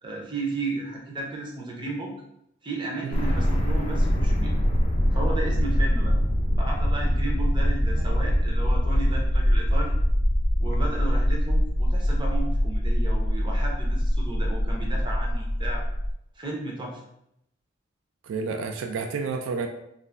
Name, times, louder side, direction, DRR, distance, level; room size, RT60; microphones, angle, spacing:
voice 1, 0.0-2.1 2.6-4.5 5.1-6.1 6.6-10.0 10.6-15.8 16.4-17.0, right 2 dB, 25° right, -1 dB, 0.5 m, -34 dB
sound 1, 3.1-16.1, equal, 30° left, 0.4 m, -23 dB
voice 2, 8.0-8.3 18.2-19.7, right 4 dB, 85° right, 4 dB, 0.3 m, -31 dB
2.4 x 2.0 x 3.2 m, 0.77 s
head